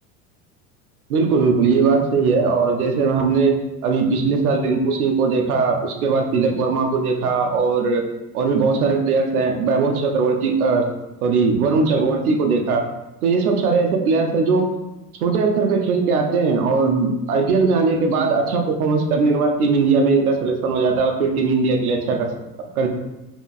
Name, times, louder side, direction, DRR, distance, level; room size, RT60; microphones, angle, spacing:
voice 1, 1.1-3.6 3.8-8.0 8.3-10.9 11.2-12.8 13.2-14.7 15.2-22.3 22.6-22.9, right 4 dB, 80° right, 3 dB, 0.8 m, -19 dB
5.1 x 2.9 x 2.4 m, 1.0 s
hypercardioid pair, 75°, 43 cm